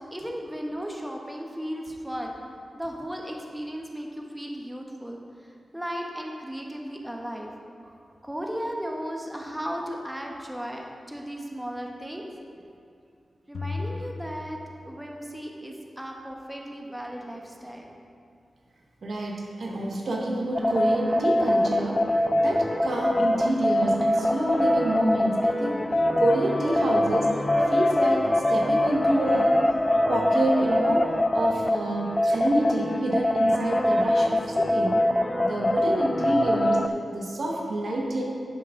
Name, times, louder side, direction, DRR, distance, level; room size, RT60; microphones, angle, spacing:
voice 1, 0.1-2.4 2.7-7.5 8.2-12.3 12.5-12.7 13.5-17.9, equal, 5° right, 0 dB, 1.0 m, -36 dB
sound 1, 13.5-15.3, left 3 dB, 85° left, 0.5 m, -36 dB
voice 2, 19.0-22.0 22.4-25.9 26.2-27.3 27.7-29.6 30.1-35.0 35.4-36.8 37.1-38.2, right 1 dB, 70° right, -1 dB, 1.3 m, -27 dB
sound 2, 20.5-36.9, left 1 dB, 20° left, 0.4 m, -23 dB
10.0 x 7.3 x 3.7 m, 2.4 s
cardioid pair, 70°, 0 cm